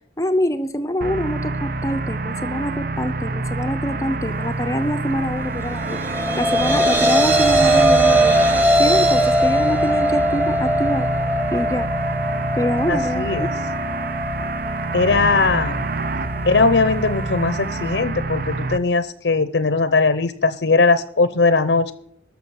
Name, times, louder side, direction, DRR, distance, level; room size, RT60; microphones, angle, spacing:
voice 1, 0.2-11.1 11.5-11.9 12.6-13.5, equal, 20° left, 10 dB, 0.6 m, -25 dB
sound 1, 1.0-18.8, right 3 dB, 55° right, 0.7 m, -27 dB
sound 2, 5.7-18.0, right 1 dB, 10° right, 1.4 m, -21 dB
voice 2, 12.9-13.5 14.9-15.8 16.4-21.9, left 3 dB, 75° left, 13 dB, 0.7 m, -19 dB
13.5 x 6.0 x 8.7 m, 0.67 s
head